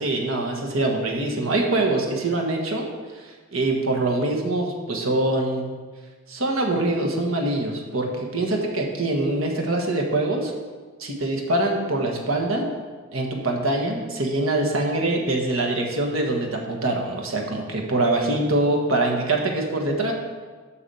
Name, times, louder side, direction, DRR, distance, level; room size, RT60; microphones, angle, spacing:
voice 1, 0.0-2.9 3.1-5.7 6.3-10.5 11.0-12.7 13.1-20.1, right 2 dB, 90° right, 1 dB, 1.5 m, -24 dB
7.2 x 6.1 x 7.0 m, 1.4 s
head